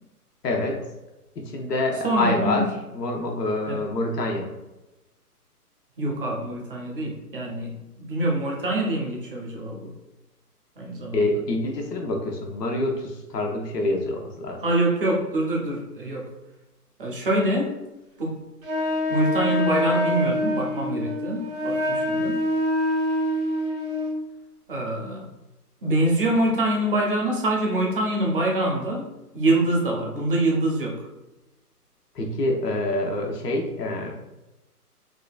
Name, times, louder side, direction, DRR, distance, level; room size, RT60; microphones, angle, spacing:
voice 1, 0.4-0.8 1.5-2.6 2.9-4.5 11.1-14.6 32.2-34.1, left 2 dB, 85° left, 1 dB, 0.8 m, -26 dB
voice 2, 2.0-2.7 3.7-3.8 6.0-9.9 10.8-11.2 14.6-16.3 17.0-17.7 18.2-18.4 19.1-22.4 24.7-25.3 25.8-29.1 29.3-31.1, right 1 dB, 35° right, -1 dB, 0.6 m, -25 dB
Wind instrument woodwind instrument, 18.6-24.2, left 1 dB, 60° right, 0.9 m, -25 dB
3.8 x 2.2 x 2.3 m, 0.99 s
hypercardioid pair, 150°, 47 cm